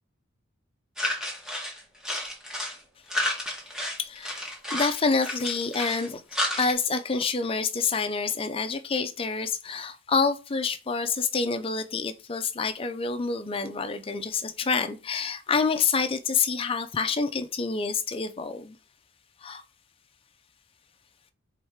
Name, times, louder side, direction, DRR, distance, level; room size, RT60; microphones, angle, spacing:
sound 1, 1.0-2.8 3.1-6.7, left 1 dB, 5° right, 0.9 m, -31 dB
voice 1, 4.0-4.4 4.7-6.2 6.6-18.8 19.4-19.6, left 4 dB, 25° left, 0.4 m, -27 dB
4.6 x 3.2 x 3.5 m
head